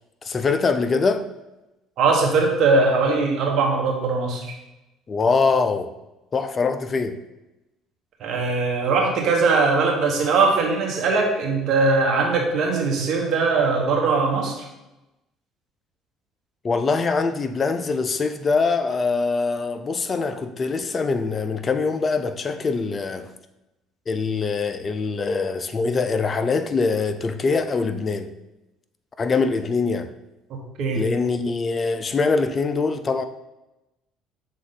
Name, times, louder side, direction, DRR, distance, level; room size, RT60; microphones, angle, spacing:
voice 1, 0.2-1.2 5.1-5.9 6.3-7.2 16.6-23.3 24.1-28.3 29.2-30.1 30.9-33.2, left 4 dB, 30° left, 0.5 m, -23 dB
voice 2, 2.0-4.5 8.2-14.6 30.8-31.0, right 4 dB, 60° right, 1.5 m, -20 dB
6.4 x 3.7 x 4.0 m
cardioid pair, 110°, 0 cm